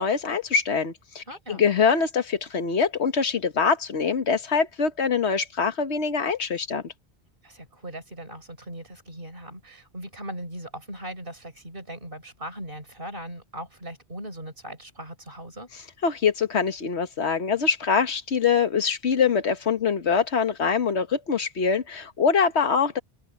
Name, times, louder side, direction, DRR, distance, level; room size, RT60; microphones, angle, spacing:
voice 1, 0.0-6.9 16.0-23.0, left 6 dB, 90° left, 1.6 m, -24 dB
voice 2, 1.3-1.6 7.4-15.7, right 1 dB, 55° right, 5.8 m, -39 dB
omnidirectional pair, 1.1 m